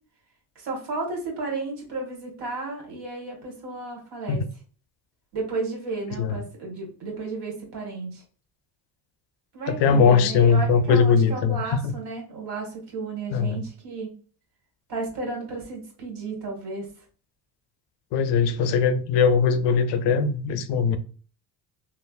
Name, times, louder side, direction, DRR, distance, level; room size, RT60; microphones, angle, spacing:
voice 1, 0.5-4.4 5.3-8.2 9.5-14.1 14.9-16.9, right 3 dB, 60° right, 1.4 m, -33 dB
voice 2, 9.7-11.9 13.3-13.7 18.1-21.0, left 5 dB, 65° left, 0.5 m, -20 dB
3.2 x 2.1 x 2.3 m
supercardioid pair, 70°, 45 cm